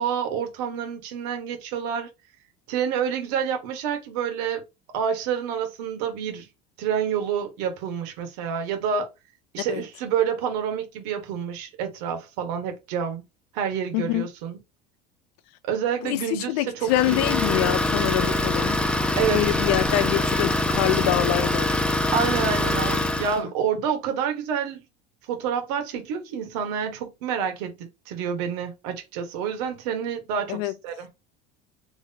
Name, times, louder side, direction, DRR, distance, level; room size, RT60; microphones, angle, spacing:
voice 1, 0.0-2.1 2.7-4.6 4.9-6.5 6.8-9.1 9.5-13.2 13.5-14.6 15.7-17.2 19.2-19.5 22.1-24.8 25.3-31.1, right 7 dB, 80° right, 1.3 m, -28 dB
voice 2, 13.9-14.3 16.0-18.8 19.3-21.7 30.5-30.7, left 14 dB, 85° left, 0.5 m, -25 dB
Idling, 16.9-23.4, left 1 dB, 5° left, 0.6 m, -24 dB
3.1 x 2.8 x 3.7 m
cardioid pair, 140°, 20 cm